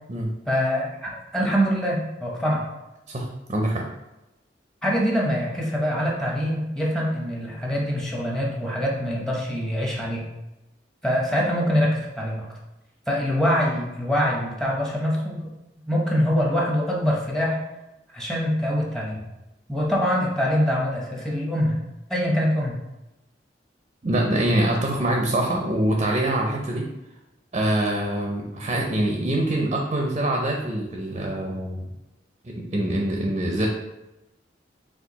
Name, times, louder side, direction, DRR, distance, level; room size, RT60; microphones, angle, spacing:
voice 1, 0.5-2.6 4.8-10.2 11.0-12.5 13.1-15.4 15.9-17.6 18.1-19.2 19.7-21.8 22.1-22.8, equal, 5° left, -3 dB, 0.8 m, -24 dB
voice 2, 3.1-3.9 24.0-26.9 27.5-31.8 32.4-33.7, right 1 dB, 35° right, 0 dB, 0.5 m, -24 dB
4.5 x 2.4 x 4.0 m, 0.97 s
head